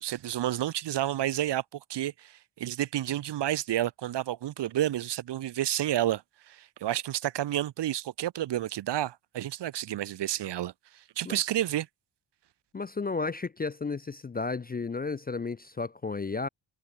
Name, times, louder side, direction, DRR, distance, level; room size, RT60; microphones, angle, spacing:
voice 1, 0.0-10.7 11.2-11.9, right 12 dB, 60° right, 0.7 m, -30 dB
voice 2, 12.7-16.5, left 4 dB, 20° left, 0.4 m, -33 dB
wide cardioid pair, 150°, 47 cm